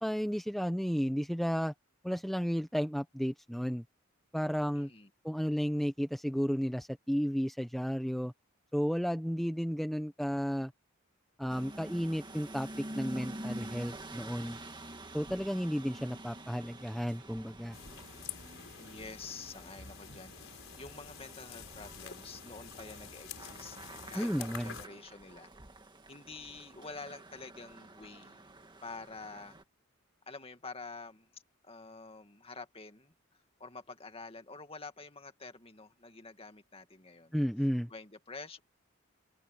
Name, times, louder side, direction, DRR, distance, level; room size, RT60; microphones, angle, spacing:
voice 1, 0.0-1.7 2.0-3.8 4.3-4.9 5.2-8.3 8.7-10.7 11.4-14.6 15.1-17.8 24.1-24.8 37.3-37.9, equal, ahead, 0.9 m, -33 dB
voice 2, 4.7-5.1 18.8-23.8 24.1-25.5 26.1-28.4 28.8-29.6 30.3-33.1 33.6-37.4 37.9-38.6, left 3 dB, 25° left, 2.1 m, -48 dB
sound 1, 11.5-29.6, right 1 dB, 20° right, 1.9 m, -48 dB
sound 2, 17.7-24.9, left 7 dB, 70° left, 5.2 m, -48 dB
open air
head